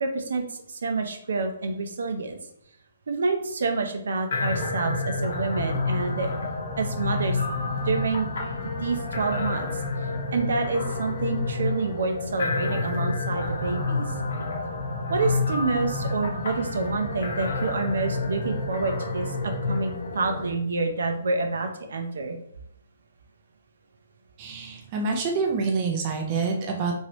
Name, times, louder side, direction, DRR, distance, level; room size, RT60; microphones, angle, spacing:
voice 1, 0.0-2.4 3.1-6.3 6.8-7.4 7.9-8.3 8.8-9.8 10.3-14.1 15.1-22.4, right 3 dB, 80° right, 5 dB, 0.6 m, -28 dB
sound 1, 4.3-20.5, left 3 dB, 60° left, 0.8 m, -29 dB
voice 2, 24.4-26.9, right 4 dB, 25° right, 1 dB, 0.4 m, -27 dB
3.2 x 2.6 x 3.0 m, 0.70 s
hypercardioid pair, 175°, 0 cm